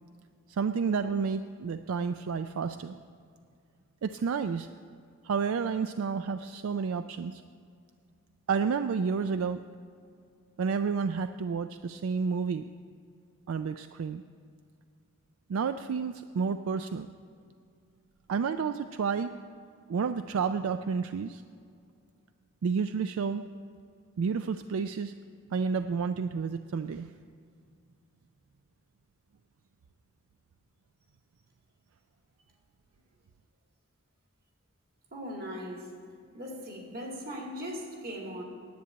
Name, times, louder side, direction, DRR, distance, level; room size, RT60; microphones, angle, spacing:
voice 1, 0.5-3.0 4.0-4.7 5.2-7.4 8.5-9.6 10.6-12.6 13.5-14.2 15.5-17.1 18.3-19.3 19.9-21.4 22.6-23.4 24.2-25.1 25.5-27.1, right 5 dB, 70° right, 10 dB, 0.3 m, -30 dB
voice 2, 35.1-35.9 36.3-38.4, equal, 45° right, 0 dB, 2.1 m, -39 dB
10.5 x 8.6 x 7.9 m, 2.3 s
head